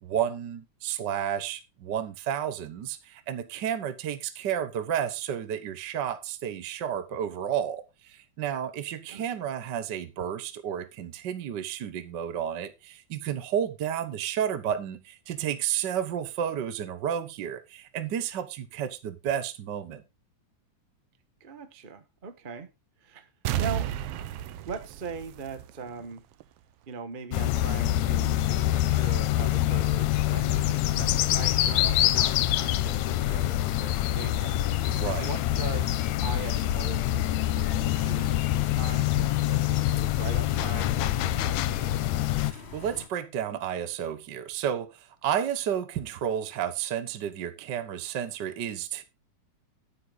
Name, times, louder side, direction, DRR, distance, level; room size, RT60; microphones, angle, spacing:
voice 1, 0.0-20.0 34.9-35.3 42.4-49.0, right 9 dB, 60° right, 1.1 m, -31 dB
voice 2, 21.4-22.7 23.0-23.3 23.6-26.2 26.9-34.7 35.2-42.1, right 5 dB, 40° right, 0.6 m, -41 dB
sound 1, 23.4-26.1 26.4-26.5, right 11 dB, 85° right, 1.3 m, -32 dB
sound 2, 27.3-42.5, left 14 dB, 75° left, 1.8 m, -25 dB
sound 3, 37.8-43.1, left 5 dB, 30° left, 1.2 m, -43 dB
9.9 x 9.6 x 3.9 m
omnidirectional pair, 3.5 m